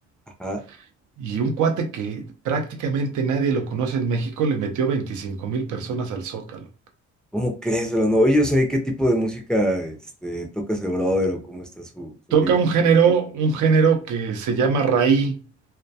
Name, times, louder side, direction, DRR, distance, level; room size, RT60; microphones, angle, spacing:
voice 1, 1.2-6.7 12.3-15.4, right 5 dB, 75° right, 0.6 m, -22 dB
voice 2, 7.3-12.6, equal, 5° left, 0.4 m, -23 dB
2.2 x 2.1 x 2.6 m
cardioid pair, 90°, 30 cm